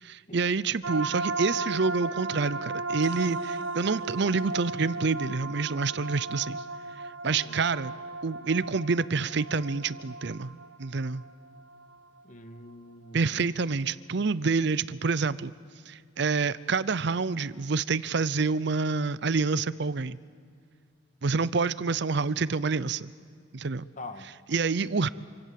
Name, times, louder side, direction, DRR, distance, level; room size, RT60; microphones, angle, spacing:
voice 1, 0.0-6.6 7.2-7.9 8.2-11.2 13.1-15.5 15.9-20.2 21.2-23.1 23.5-23.8 24.5-25.1, right 4 dB, 60° right, 18 dB, 0.6 m, -27 dB
sound 1, 0.8-12.2, right 3 dB, 85° right, 1.2 m, -36 dB
voice 2, 7.2-7.7 12.2-13.4 24.0-24.3, left 2 dB, 40° left, 9 dB, 1.6 m, -44 dB
27.0 x 25.5 x 7.6 m, 2.1 s
head